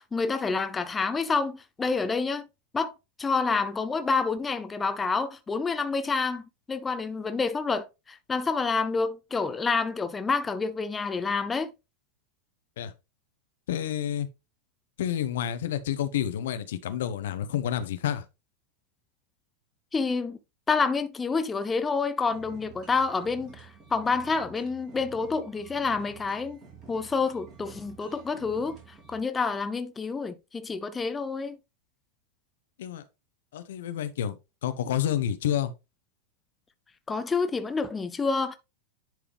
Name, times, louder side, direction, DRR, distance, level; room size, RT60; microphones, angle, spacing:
voice 1, 0.0-2.5 2.7-2.9 3.2-6.4 6.7-11.7 19.9-20.4 20.7-26.6 26.9-28.8 29.1-31.6 37.1-38.6, left 4 dB, 15° left, 0.5 m, -28 dB
voice 2, 13.7-14.3 15.0-18.2 32.8-33.0 33.5-34.4 34.6-35.7, left 10 dB, 60° left, 0.8 m, -29 dB
sound 1, 22.3-29.2, right 6 dB, 30° right, 2.7 m, -50 dB
10.5 x 3.6 x 3.3 m
figure-of-eight pair, 90°, 0 cm